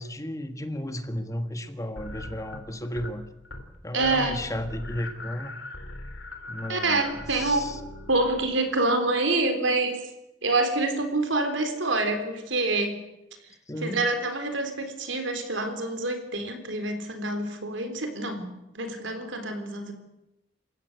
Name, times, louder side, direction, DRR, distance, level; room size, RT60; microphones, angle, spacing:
voice 1, 0.0-3.3 3.8-5.5 6.5-7.8 13.7-14.1, left 1 dB, 15° left, 8 dB, 1.5 m, -34 dB
sound 1, 2.0-3.2 3.4-3.8 4.0-8.8, left 2 dB, 75° left, 3.3 m, -40 dB
voice 2, 3.9-4.4 6.7-7.7 8.1-10.0 10.4-13.0 13.8-18.5 18.7-19.9, right 2 dB, 80° right, 7 dB, 4.0 m, -26 dB
28.5 x 15.5 x 8.0 m, 0.93 s
head